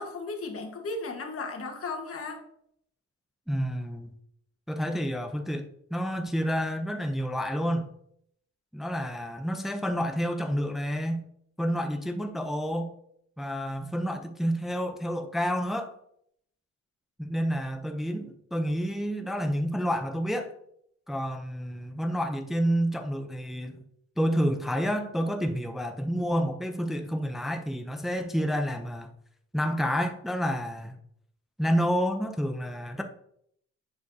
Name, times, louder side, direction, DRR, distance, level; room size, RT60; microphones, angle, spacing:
voice 1, 0.0-2.4, left 3 dB, 50° left, 1.6 m, -35 dB
voice 2, 3.5-4.1 4.7-7.9 8.7-11.2 11.6-12.9 13.4-15.9 17.2-20.5 21.1-23.8 24.2-29.1 29.5-31.0 31.6-33.0, equal, ahead, 0.6 m, -29 dB
10.0 x 4.8 x 2.8 m
cardioid pair, 90°, 30 cm